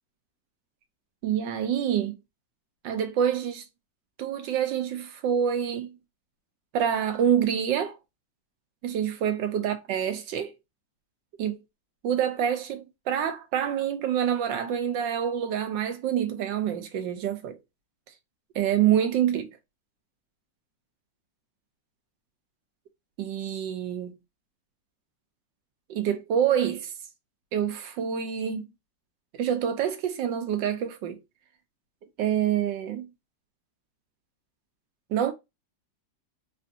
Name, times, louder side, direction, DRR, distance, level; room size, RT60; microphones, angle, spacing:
voice 1, 1.2-2.2 2.8-3.6 4.2-6.0 6.7-8.0 8.8-10.5 11.4-11.6 12.0-17.6 18.5-19.5 23.2-24.1 25.9-26.9 27.5-28.7 29.3-31.2 32.2-33.1 35.1-35.3, right 9 dB, 80° right, 1.5 m, -27 dB
4.3 x 2.7 x 2.5 m
omnidirectional pair, 2.0 m